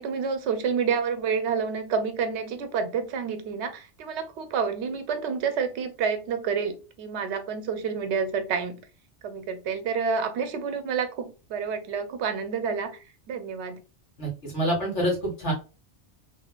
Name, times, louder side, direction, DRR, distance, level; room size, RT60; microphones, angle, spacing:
voice 1, 0.0-8.8 9.2-13.0 13.3-13.8, right 6 dB, 75° right, 10 dB, 0.9 m, -29 dB
voice 2, 14.2-15.5, right 1 dB, 80° left, -3 dB, 2.0 m, -27 dB
3.3 x 2.6 x 2.2 m, 0.33 s
omnidirectional pair, 1.2 m